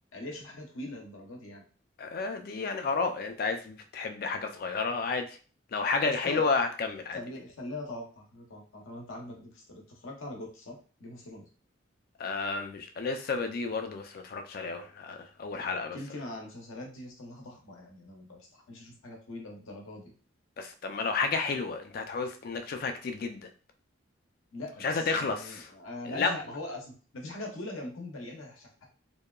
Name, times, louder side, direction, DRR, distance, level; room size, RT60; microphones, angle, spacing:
voice 1, 0.1-1.6 6.0-6.5 7.1-11.5 15.9-20.1 24.5-28.9, left 2 dB, 80° left, 1 dB, 0.7 m, -42 dB
voice 2, 2.0-5.4 5.7-7.2 12.2-16.0 20.6-23.5 24.8-25.7 26.0-26.3, left 4 dB, 45° left, 6 dB, 0.3 m, -31 dB
2.7 x 2.2 x 2.2 m, 0.38 s
head